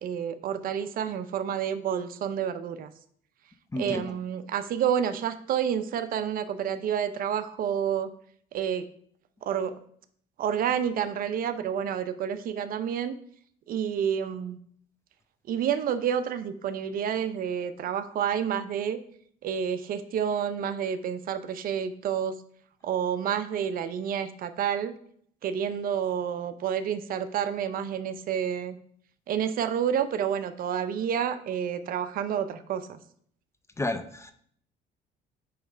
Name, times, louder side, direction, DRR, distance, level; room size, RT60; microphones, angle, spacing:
voice 1, 0.0-2.9 3.8-8.1 8.5-8.9 9.4-9.7 10.4-13.2 13.7-14.6 15.5-19.0 19.4-22.3 22.8-24.9 25.4-28.7 29.3-33.0, right 8 dB, 60° right, 12 dB, 0.6 m, -29 dB
voice 2, 3.7-4.2 33.8-34.3, left 2 dB, 15° left, 9 dB, 0.5 m, -31 dB
8.9 x 3.2 x 4.9 m, 0.63 s
cardioid pair, 110°, 17 cm